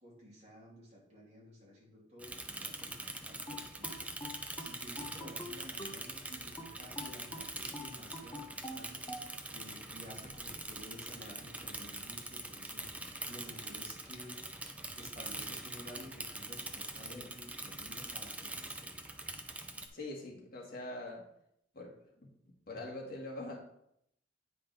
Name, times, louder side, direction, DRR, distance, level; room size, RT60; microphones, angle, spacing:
voice 1, 0.0-4.1 4.6-14.4 14.9-18.9 22.7-22.9, equal, 35° right, -5 dB, 2.9 m, -53 dB
Bicycle / Mechanisms, 2.2-19.9, right 2 dB, 5° right, 0.5 m, -44 dB
sound 1, 3.5-6.1 6.6-9.3, left 1 dB, 15° left, 0.8 m, -46 dB
voice 2, 19.9-21.2 21.7-21.9 22.2-22.3 22.7-23.6, left 2 dB, 50° left, -2 dB, 1.9 m, -43 dB
9.2 x 5.2 x 3.4 m, 0.75 s
head